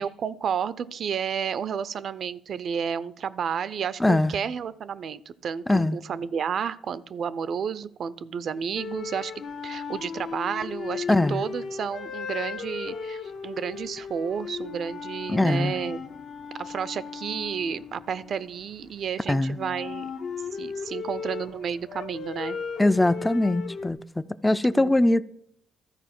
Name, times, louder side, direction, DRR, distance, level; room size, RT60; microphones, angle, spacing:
voice 1, 0.0-9.3 9.6-16.0 16.6-20.1 20.5-22.6 24.7-25.0, right 7 dB, 60° right, 0.4 m, -31 dB
voice 2, 4.0-4.3 5.7-6.0 11.1-11.4 15.3-15.8 19.3-19.6 22.8-25.2, left 2 dB, 10° left, 0.3 m, -22 dB
sound 1, 8.8-18.9 19.5-23.9, left 6 dB, 60° left, 0.7 m, -36 dB
13.0 x 4.5 x 5.9 m
cardioid pair, 90°, 0 cm